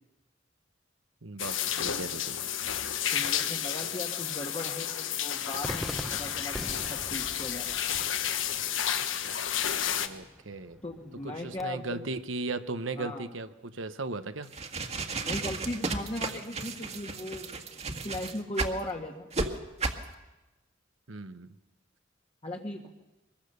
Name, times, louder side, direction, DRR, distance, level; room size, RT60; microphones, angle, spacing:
voice 1, 1.2-2.4 9.9-10.8 11.2-14.5 21.1-21.5, right 3 dB, 80° right, 11 dB, 1.1 m, -37 dB
sound 1, 1.4-10.1, left 9 dB, 80° left, 1.3 m, -31 dB
voice 2, 3.1-7.8 10.8-12.0 13.0-13.3 15.2-19.3 22.4-22.9, left 1 dB, 30° left, 1 dB, 1.6 m, -38 dB
Cheering / Fireworks, 5.6-11.6, equal, ahead, 0.9 m, -43 dB
sound 2, 14.4-18.8 19.3-19.5 19.8-20.0, right 3 dB, 35° right, 1.7 m, -33 dB
23.5 x 21.5 x 6.8 m, 1.0 s
head